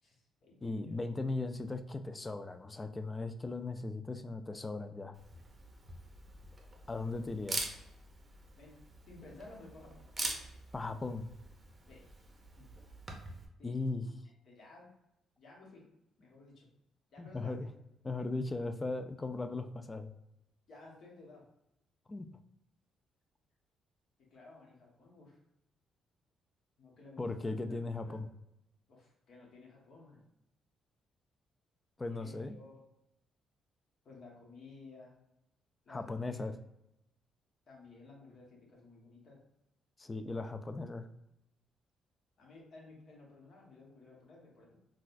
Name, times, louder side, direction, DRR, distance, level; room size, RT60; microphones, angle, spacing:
voice 1, 0.0-1.0 8.6-8.7 9.1-10.0 11.9-12.0 12.5-12.7 13.6-13.9 14.4-14.9 15.4-15.8 16.2-16.7 17.1-17.7 20.7-21.4 24.3-25.4 26.8-27.6 28.0-28.2 28.9-30.2 32.1-32.8 34.0-35.1 35.8-36.5 37.7-39.4 42.4-44.8, left 3 dB, 60° left, -2 dB, 1.3 m, -55 dB
voice 2, 0.6-5.1 6.9-7.6 10.7-11.3 13.6-14.1 17.2-17.7 18.0-20.1 22.1-22.3 27.2-28.3 32.0-32.6 35.9-36.5 40.0-41.1, left 3 dB, 20° left, 8 dB, 0.3 m, -38 dB
Camera, 5.1-13.5, right 2 dB, 30° right, 0.7 m, -44 dB
4.0 x 2.3 x 2.5 m, 0.85 s
cardioid pair, 90°, 0 cm